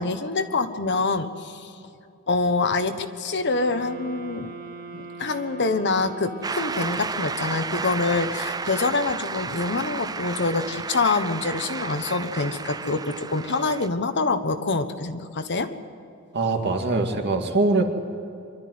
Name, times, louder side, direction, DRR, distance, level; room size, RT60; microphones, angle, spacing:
voice 1, 0.0-1.7 2.3-4.5 4.9-15.7, left 3 dB, 55° left, 9 dB, 1.2 m, -25 dB
sound 1, 3.5-7.4, right 4 dB, 75° right, 3.2 m, -41 dB
Shout / Cheering / Applause, 6.4-13.9, right 4 dB, 20° right, 0.4 m, -32 dB
voice 2, 16.3-17.8, right 3 dB, 55° right, 3 dB, 2.1 m, -22 dB
24.0 x 12.5 x 9.5 m, 2.6 s
head